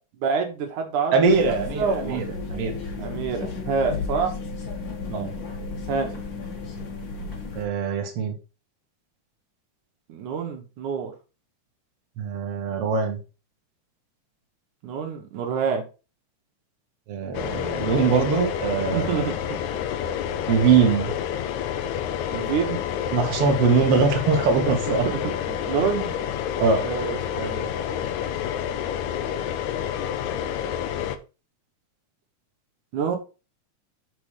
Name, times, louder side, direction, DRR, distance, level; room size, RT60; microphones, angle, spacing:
voice 1, 0.2-2.2 3.0-4.3 5.9-6.2 10.1-11.1 14.8-15.8 18.9-19.6 22.3-22.8 24.7-26.1 26.8-27.7 32.9-33.2, right 6 dB, 75° right, 2.6 m, -27 dB
voice 2, 1.1-2.2 2.5-2.7 5.1-5.3 7.6-8.3 12.2-13.2 17.1-19.2 20.5-21.1 23.1-25.1 26.6-26.8, right 5 dB, 55° right, 2.2 m, -22 dB
sound 1, 1.3-7.7, left 3 dB, 45° left, 2.0 m, -33 dB
sound 2, 17.3-31.2, left 9 dB, 75° left, 2.0 m, -29 dB
7.0 x 4.6 x 4.8 m
omnidirectional pair, 3.5 m